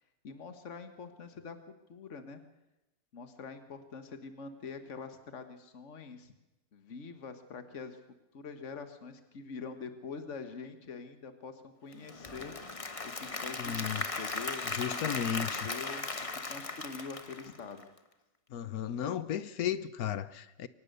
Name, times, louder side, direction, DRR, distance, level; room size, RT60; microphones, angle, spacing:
voice 1, 0.2-1.6 1.9-2.4 3.1-6.3 6.7-8.0 8.3-12.6 13.0-17.9, left 5 dB, 50° left, 1.8 m, -45 dB
Applause / Crowd, 11.9-18.0, left 3 dB, 25° left, 1.1 m, -37 dB
voice 2, 13.6-14.0 14.7-15.7 18.5-20.7, left 9 dB, 75° left, 1.3 m, -34 dB
24.0 x 18.0 x 6.8 m
omnidirectional pair, 1.6 m